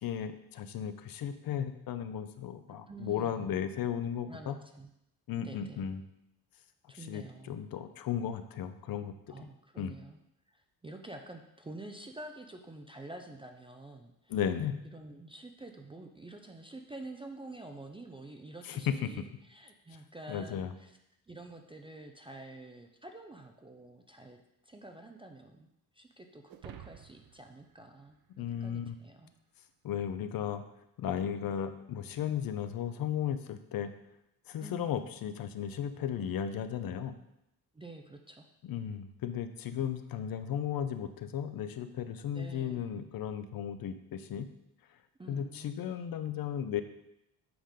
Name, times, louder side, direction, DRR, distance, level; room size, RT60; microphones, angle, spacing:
voice 1, 0.0-4.6 5.3-6.0 7.1-9.2 9.8-9.9 14.3-14.8 18.6-19.1 20.3-20.7 28.4-29.0 29.8-30.6 31.0-33.9 34.5-37.1 38.6-44.5 45.3-46.8, left 9 dB, 60° left, 10 dB, 0.6 m, -35 dB
voice 2, 2.9-3.6 4.2-4.9 5.4-5.8 6.9-7.6 9.3-10.2 10.5-14.4 14.8-21.0 21.3-25.7 25.9-29.3 34.6-35.0 37.7-38.5 42.3-42.8 45.2-45.7, right 2 dB, 15° right, 3 dB, 0.3 m, -48 dB
sound 1, 26.5-29.0, right 11 dB, 60° right, 0.6 m, -52 dB
8.0 x 3.7 x 5.0 m, 0.82 s
cardioid pair, 170°, 40 cm